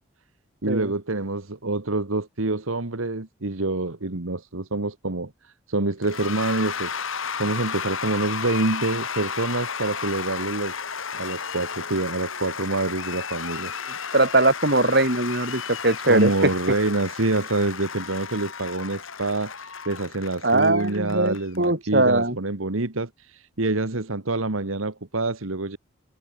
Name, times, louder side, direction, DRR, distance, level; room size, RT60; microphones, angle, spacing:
voice 1, 0.6-10.8 11.1-13.7 16.0-25.8, right 2 dB, 80° right, 1.6 m, -26 dB
Cheering / Applause / Crowd, 6.0-21.7, left 6 dB, 75° left, 2.5 m, -33 dB
voice 2, 14.1-16.3 20.4-22.4, right 2 dB, 50° right, 5.4 m, -21 dB
head